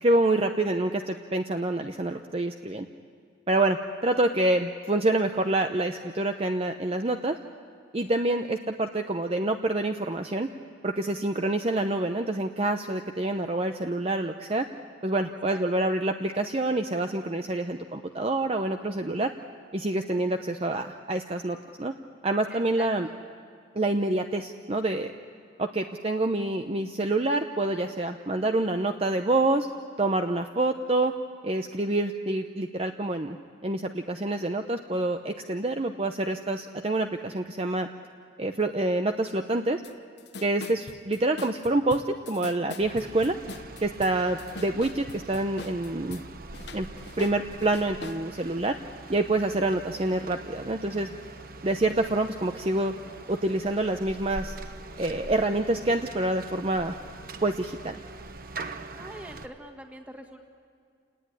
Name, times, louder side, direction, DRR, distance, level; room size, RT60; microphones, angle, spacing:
voice 1, 0.0-2.9 3.5-7.4 7.9-10.5 10.8-14.7 15.0-19.3 19.7-21.9 22.2-23.1 23.7-25.1 25.6-29.7 30.0-31.1 31.4-33.4 33.6-37.9 38.4-39.8 40.4-43.4 43.8-46.2 46.7-46.9 47.2-48.8 49.1-51.1 51.6-52.9 53.3-54.5 55.0-57.0 57.4-57.9, right 2 dB, 30° right, 6 dB, 0.7 m, -27 dB
voice 2, 15.3-15.9 22.5-23.2 58.9-60.4, right 1 dB, 10° right, 3 dB, 2.0 m, -45 dB
sound 1, 39.8-39.9 40.2-46.2 46.5-48.2, left 3 dB, 60° left, 1.0 m, -42 dB
sound 2, 42.8-59.5, right 3 dB, 50° right, 1.1 m, -43 dB
29.0 x 18.5 x 9.8 m, 2.2 s
head